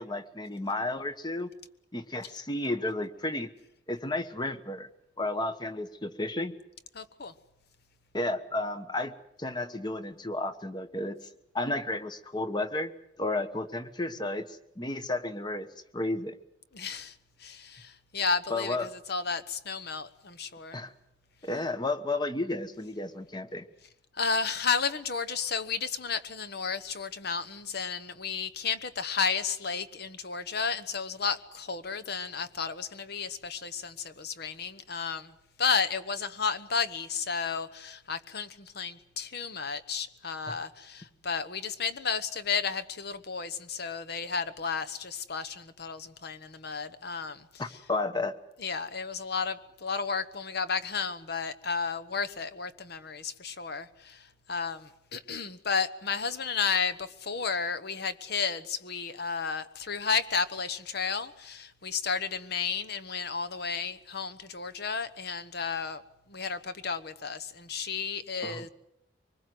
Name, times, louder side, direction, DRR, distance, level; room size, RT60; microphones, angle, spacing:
voice 1, 0.0-1.5 1.9-3.5 3.9-4.9 5.2-6.6 8.1-11.2 11.5-12.9 13.2-15.7 15.9-16.4 18.5-18.9 20.7-20.9 21.4-23.7 47.6-48.4 68.4-68.7, left 2 dB, 20° left, 11 dB, 1.1 m, -32 dB
voice 2, 6.9-7.3 16.7-20.8 24.1-35.3 35.6-47.8 48.6-66.0 66.3-68.7, left 5 dB, 55° left, 13 dB, 1.1 m, -32 dB
24.5 x 20.5 x 7.8 m, 0.83 s
head